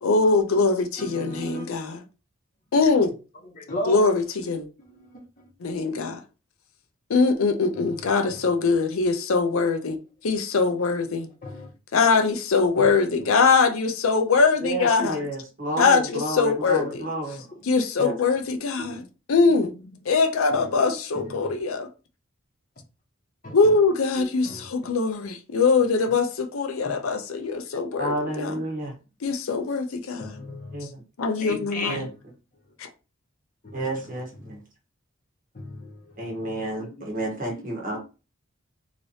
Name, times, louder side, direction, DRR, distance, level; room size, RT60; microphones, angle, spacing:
voice 1, 0.0-2.0 2.7-3.1 3.9-4.7 5.6-6.2 7.1-10.0 10.2-11.3 11.9-15.2 15.8-17.1 17.6-19.0 19.3-19.7 20.1-21.9 23.5-28.6 29.2-30.4 31.2-32.1, left 4 dB, 80° left, 0.5 m, -22 dB
voice 2, 1.0-1.6 3.5-4.1 4.8-5.5 7.7-8.6 11.4-11.7 12.8-12.9 13.2-13.3 17.5-17.6 18.3-18.9 19.5-19.9 20.5-20.7 21.1-21.4 23.4-23.7 24.2-24.6 26.8-26.9 28.5-28.8 30.2-30.8 31.4-32.1 33.8-34.1 34.4-34.5 35.5-38.0, left 1 dB, 40° left, 0.9 m, -38 dB
voice 3, 14.6-17.4 18.0-18.1 28.0-28.9 30.7-31.0 31.9-32.1 33.7-34.6 36.2-38.0, right 1 dB, 40° right, 1.0 m, -30 dB
3.2 x 2.9 x 2.7 m
head